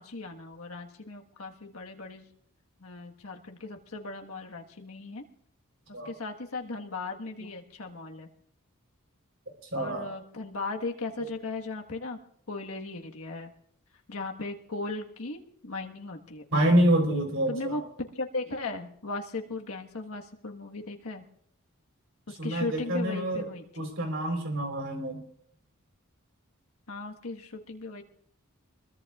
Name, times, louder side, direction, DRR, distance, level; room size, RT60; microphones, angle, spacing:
voice 1, 0.0-2.2 2.8-5.2 6.0-8.3 9.7-12.2 12.5-13.5 14.1-16.4 17.5-17.8 18.1-21.2 22.3-23.9 26.9-28.0, left 3 dB, 80° left, 2 dB, 1.5 m, -37 dB
voice 2, 9.7-10.1 11.2-11.3 16.5-17.8 22.4-23.5 23.8-25.2, right 1 dB, 60° right, 3 dB, 4.0 m, -26 dB
24.5 x 21.5 x 2.4 m, 0.66 s
head